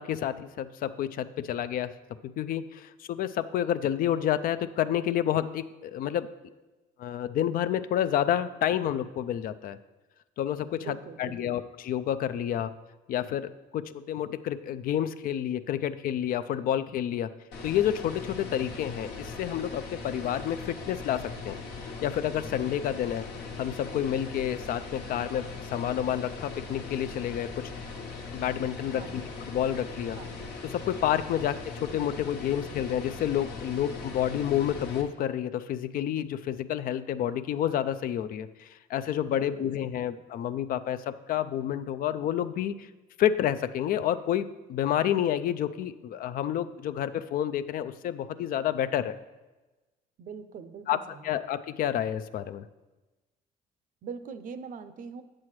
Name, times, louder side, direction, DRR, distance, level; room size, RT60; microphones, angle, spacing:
voice 1, 0.0-1.9 2.2-6.3 7.0-9.8 10.4-12.7 13.1-17.3 17.6-21.6 22.0-23.3 23.6-27.5 28.3-29.2 29.5-30.2 30.7-31.6 31.8-42.9 43.2-49.1 50.9-51.0 51.2-52.7, left 10 dB, 55° left, 13 dB, 0.4 m, -29 dB
voice 2, 10.8-11.6 28.9-29.3 30.2-30.3 31.4-31.5 39.3-40.1 50.2-51.3 54.0-55.2, right 6 dB, 50° right, 11 dB, 0.6 m, -43 dB
sound 1, 17.5-35.0, left 4 dB, 80° left, 1.3 m, -40 dB
8.4 x 7.5 x 3.2 m, 1.1 s
cardioid pair, 110°, 17 cm